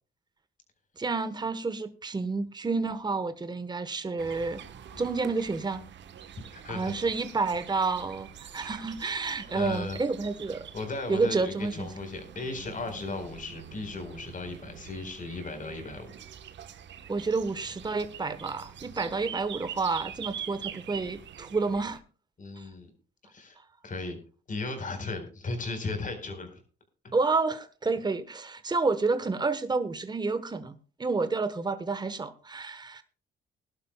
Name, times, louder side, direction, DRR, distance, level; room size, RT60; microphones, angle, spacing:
voice 1, 1.0-4.6 5.0-5.8 6.7-10.6 11.1-11.9 17.1-22.0 22.6-22.7 27.1-33.0, right 3 dB, 20° right, 1.1 m, -30 dB
sound 1, 4.2-22.0, right 9 dB, 65° right, 1.2 m, -45 dB
voice 2, 6.5-6.9 9.5-10.0 10.7-16.1 22.4-22.9 23.3-23.6 23.8-24.2 24.5-26.6 27.0-27.1, left 3 dB, 40° left, 4.3 m, -36 dB
21.5 x 11.5 x 2.3 m
cardioid pair, 90°, 20 cm